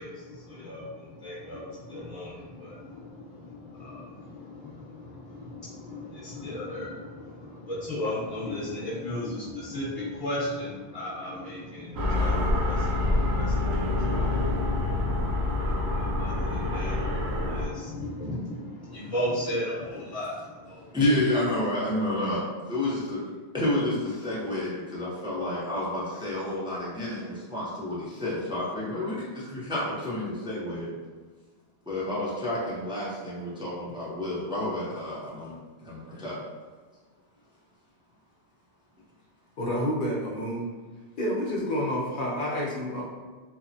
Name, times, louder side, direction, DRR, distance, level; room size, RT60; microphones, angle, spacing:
voice 1, 0.0-21.1, left 1 dB, 25° left, -9 dB, 0.9 m, -36 dB
sound 1, 11.9-17.7, left 2 dB, 75° right, 0.8 m, -26 dB
voice 2, 20.9-22.4 22.7-23.2 23.5-30.9 31.9-35.6 35.8-36.4, left 1 dB, 5° right, -7 dB, 0.4 m, -30 dB
voice 3, 39.6-40.6 41.2-43.0, equal, 60° left, -3 dB, 0.7 m, -29 dB
2.9 x 2.0 x 2.6 m, 1.4 s
omnidirectional pair, 1.1 m